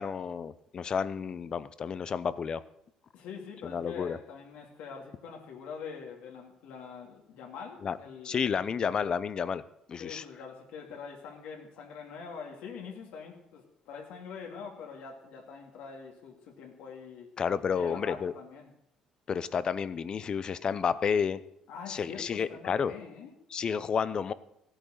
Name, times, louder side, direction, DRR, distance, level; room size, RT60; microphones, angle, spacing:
voice 1, 0.0-2.6 3.6-4.2 7.8-8.0 8.2-9.6 9.9-10.2 17.4-18.3 19.3-21.4 21.9-22.9 23.5-24.3, left 6 dB, 35° left, 16 dB, 0.6 m, -31 dB
voice 2, 3.1-8.8 10.0-17.3 17.7-18.7 21.7-23.3, left 6 dB, 80° left, 0 dB, 2.4 m, -44 dB
15.0 x 9.0 x 6.5 m, 0.78 s
cardioid pair, 125°, 2 cm